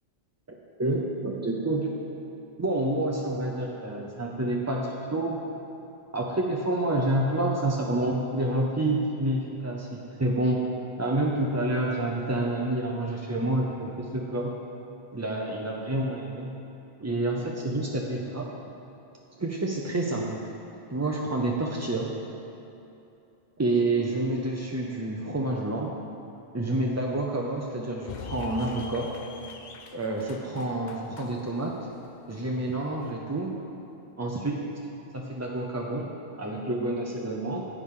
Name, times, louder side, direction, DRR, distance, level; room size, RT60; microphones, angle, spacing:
voice 1, 0.5-1.9 2.6-5.4 6.1-10.7 11.0-14.6 15.1-16.5 17.0-18.5 19.4-20.4 20.9-22.1 23.6-25.9 26.5-29.1 29.9-31.7 32.3-33.5 34.2-34.6 35.1-37.7, right 2 dB, 25° right, -1 dB, 0.3 m, -28 dB
sound 1, 28.1-33.1, left 5 dB, 55° left, 0.6 m, -44 dB
9.9 x 8.1 x 3.7 m, 2.8 s
omnidirectional pair, 1.1 m